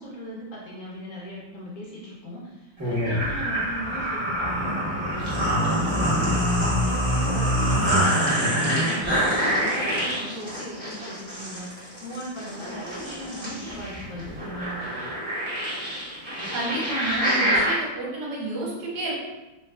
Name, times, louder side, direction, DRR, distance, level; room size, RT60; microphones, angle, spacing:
voice 1, 0.0-14.8, equal, 80° left, -5 dB, 0.8 m, -38 dB
sound 1, 2.8-17.8, equal, 20° right, 0.8 m, -25 dB
voice 2, 16.5-19.2, right 1 dB, 60° right, -4 dB, 1.2 m, -30 dB
3.1 x 3.1 x 2.3 m, 1.1 s
omnidirectional pair, 2.4 m